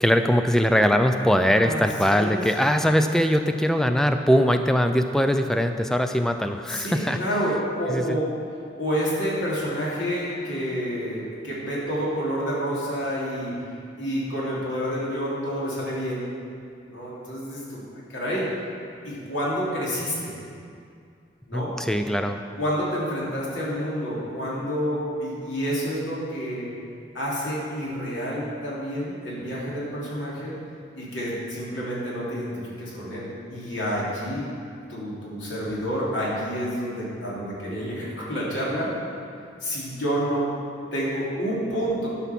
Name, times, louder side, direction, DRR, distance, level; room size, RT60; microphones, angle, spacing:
voice 1, 0.0-7.2 7.9-8.2 21.5-22.4, equal, 5° left, 6 dB, 0.4 m, -21 dB
voice 2, 1.6-2.4 6.7-8.3 8.8-13.5 14.0-16.3 16.9-17.8 18.1-18.5 19.0-20.3 21.5-21.7 22.6-26.7 27.1-30.6 30.9-34.5 34.9-38.9 39.6-40.5 40.9-42.1, equal, 90° left, -7 dB, 3.0 m, -29 dB
11.5 x 5.9 x 6.0 m, 2.4 s
head